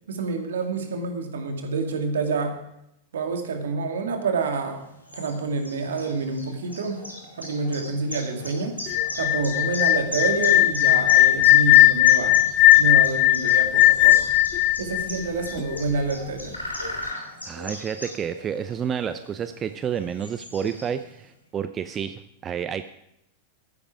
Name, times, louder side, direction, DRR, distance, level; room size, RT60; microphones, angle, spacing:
voice 1, 0.1-2.5 3.1-4.8 5.1-7.0 7.4-8.8 9.2-12.4 12.8-14.2 14.8-16.5, right 4 dB, 65° right, 5 dB, 2.1 m, -27 dB
sound 1, 4.7-21.2, left 1 dB, 85° left, 3.0 m, -39 dB
sound 2, 8.9-15.8, left 15 dB, 40° left, 0.5 m, -17 dB
voice 2, 17.4-22.8, right 8 dB, 25° right, 11 dB, 0.5 m, -30 dB
14.5 x 10.0 x 4.8 m, 0.80 s
figure-of-eight pair, 90°, 0 cm